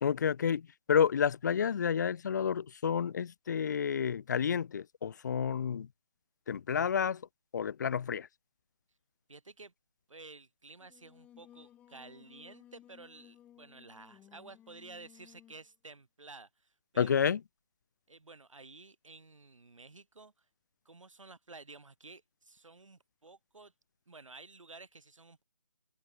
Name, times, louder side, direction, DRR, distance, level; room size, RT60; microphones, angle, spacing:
voice 1, 0.0-5.9 6.5-7.2 7.5-8.3 17.0-17.4, left 7 dB, 35° left, 0.5 m, -30 dB
voice 2, 9.3-9.7 10.1-17.3 18.1-20.5 20.9-23.7 24.1-25.4, right 3 dB, 75° right, 3.5 m, -53 dB
Singing, 10.8-15.7, left 11 dB, 10° left, 1.1 m, -59 dB
open air
figure-of-eight pair, 155°, 17 cm